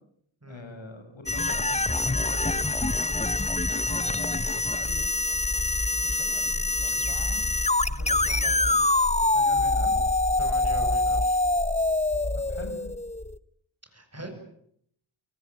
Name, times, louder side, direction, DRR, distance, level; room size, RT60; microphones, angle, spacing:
voice 1, 0.5-3.1 3.7-5.2 5.9-7.5 7.9-8.8 9.3-10.0 12.3-12.8 14.2-14.3, left 3 dB, 65° left, 6 dB, 6.9 m, -44 dB
sound 1, 1.3-13.4, left 2 dB, 15° left, 1.0 m, -25 dB
voice 2, 10.4-11.4 13.9-14.3, right 2 dB, 30° right, 6 dB, 7.9 m, -42 dB
29.0 x 19.5 x 9.1 m, 0.70 s
cardioid pair, 50°, 48 cm